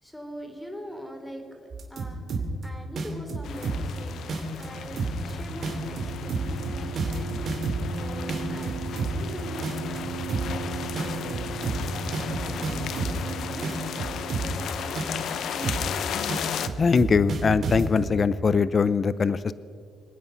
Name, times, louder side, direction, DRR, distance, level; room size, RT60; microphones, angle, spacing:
voice 1, 0.0-9.8 10.2-11.5 12.0-13.7 14.3-14.9 15.3-16.3, equal, 5° left, 4 dB, 3.1 m, -43 dB
sound 1, 1.7-2.6 3.0-4.0 4.3-4.6 5.0-5.3 5.6-8.0 8.3-9.3 9.6-10.0 10.3-10.6 11.0-13.3 13.6-14.6 15.0-15.3 15.6-16.0 16.3-18.1, right 4 dB, 55° right, 2.8 m, -30 dB
sound 2, 3.4-16.7, left 8 dB, 70° left, 0.8 m, -36 dB
sound 3, 3.4-16.6, right 4 dB, 35° right, 2.3 m, -37 dB
voice 2, 16.8-19.5, left 5 dB, 40° left, 16 dB, 0.5 m, -22 dB
26.5 x 9.3 x 5.6 m, 2.2 s
cardioid pair, 90°, 0 cm